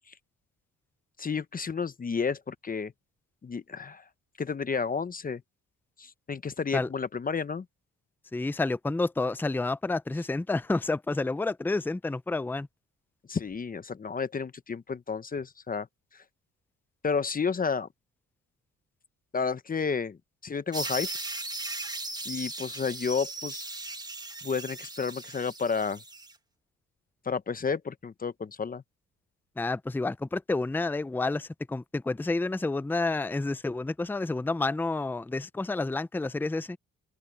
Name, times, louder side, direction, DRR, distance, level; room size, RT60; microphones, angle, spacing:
voice 1, 1.2-2.9 3.4-4.0 4.4-5.4 6.0-7.6 13.3-15.9 17.0-17.9 19.3-20.2 20.4-21.1 22.3-23.7 24.4-26.0 27.2-28.8, left 5 dB, 30° left, 0.9 m, -31 dB
voice 2, 8.3-12.7 29.6-36.8, left 3 dB, 5° left, 0.6 m, -29 dB
sound 1, 20.7-26.3, right 2 dB, 15° right, 1.6 m, -37 dB
open air
cardioid pair, 90°, 30 cm